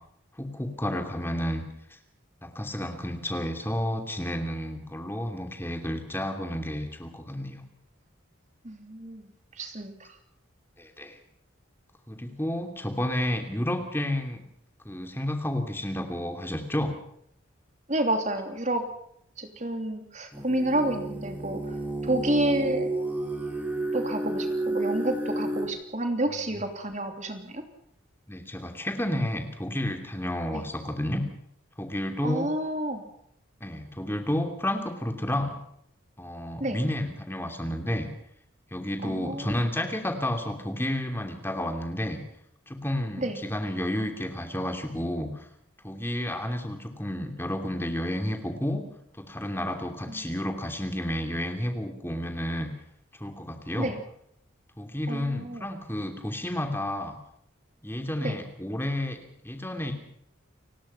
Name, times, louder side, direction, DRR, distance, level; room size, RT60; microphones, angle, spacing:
voice 1, 0.4-1.6 2.4-7.6 10.8-11.2 12.1-14.4 14.8-16.9 28.3-31.2 31.8-32.5 33.6-35.6 36.2-38.1 38.7-42.2 42.7-45.5 45.8-48.8 49.2-52.7 53.2-53.9 54.8-57.2 57.8-59.2 59.4-59.9, left 1 dB, 10° left, 5 dB, 2.8 m, -31 dB
voice 2, 8.6-9.3 9.6-10.1 17.9-18.9 19.4-21.7 22.0-23.0 23.9-27.6 30.5-30.6 32.2-33.0 36.6-36.8 39.0-39.6 43.2-43.4 50.1-50.3 53.8-54.0 55.1-55.7 58.2-58.4, right 1 dB, 35° right, 6 dB, 3.0 m, -29 dB
sound 1, 20.3-25.7, right 2 dB, 10° right, 5.3 m, -31 dB
30.0 x 17.5 x 5.7 m, 0.70 s
head